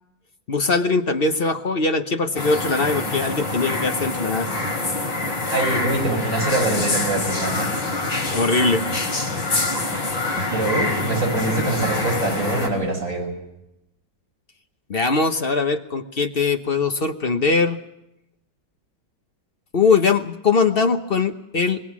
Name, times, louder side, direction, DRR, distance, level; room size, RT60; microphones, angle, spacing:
voice 1, 0.5-4.5 8.3-8.8 14.9-17.8 19.7-21.8, left 4 dB, 40° left, 7 dB, 0.9 m, -21 dB
sound 1, 2.4-12.7, left 2 dB, 85° left, 4.4 m, -25 dB
voice 2, 5.5-7.7 10.5-13.3, right 2 dB, 45° right, 1 dB, 6.2 m, -24 dB
25.5 x 20.5 x 6.2 m, 0.88 s
omnidirectional pair, 2.0 m